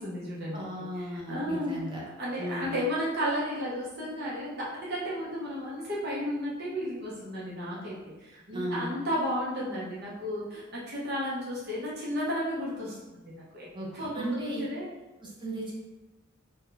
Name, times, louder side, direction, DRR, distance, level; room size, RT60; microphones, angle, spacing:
voice 1, 0.0-0.6 0.9-1.8 2.2-7.9 8.2-13.7 13.9-14.3 14.6-14.9, equal, 55° right, -6 dB, 0.8 m, -33 dB
voice 2, 0.5-2.0 2.4-2.7 8.5-9.0 13.7-14.6 15.2-15.7, equal, 25° right, -3 dB, 0.7 m, -35 dB
2.7 x 2.2 x 3.8 m, 1.1 s
head